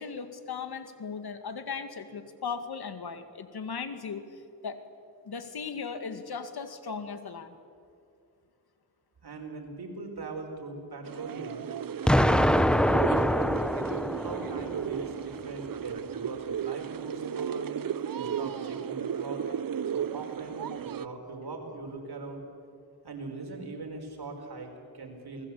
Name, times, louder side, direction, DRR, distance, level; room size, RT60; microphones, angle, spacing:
voice 1, 0.0-4.2 4.6-4.8 5.2-7.6, left 5 dB, 80° left, 8 dB, 2.2 m, -37 dB
voice 2, 9.2-11.6 12.2-13.5 14.2-17.7 18.1-19.4 19.9-20.6 20.9-22.4 23.0-25.5, right 3 dB, 80° right, 3 dB, 4.9 m, -40 dB
sound 1, 11.0-21.1, right 8 dB, 60° right, 0.8 m, -35 dB
Explosion, 12.1-15.0, equal, ahead, 0.9 m, -24 dB
29.0 x 20.0 x 8.5 m, 2.4 s
cardioid pair, 75°, 38 cm